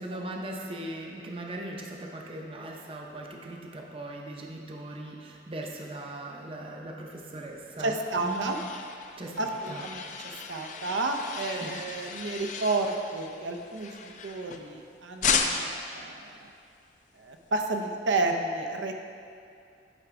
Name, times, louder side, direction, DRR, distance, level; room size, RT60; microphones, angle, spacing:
voice 1, 0.0-8.0 8.2-8.4 9.2-9.8 11.6-11.8, right 1 dB, 30° right, 0 dB, 0.5 m, -39 dB
sound 1, 7.5-14.8 15.2-15.9, left 6 dB, 40° left, 0.4 m, -34 dB
voice 2, 7.8-8.6 9.4-16.5 17.2-18.9, right 2 dB, 85° right, 3 dB, 0.6 m, -31 dB
9.9 x 4.8 x 3.6 m, 2.4 s
head